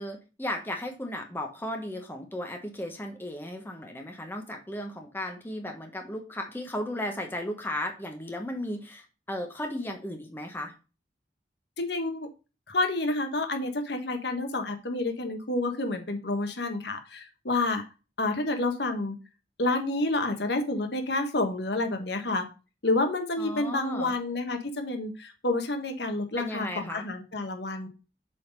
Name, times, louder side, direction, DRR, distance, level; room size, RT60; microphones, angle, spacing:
voice 1, 0.0-10.7 23.4-24.1 26.4-27.1, left 1 dB, 10° left, 3 dB, 1.1 m, -35 dB
voice 2, 11.8-12.3 12.7-17.8 18.2-19.2 19.6-22.5 22.8-27.9, left 2 dB, 70° left, 5 dB, 1.3 m, -29 dB
7.6 x 4.0 x 5.2 m, 0.31 s
head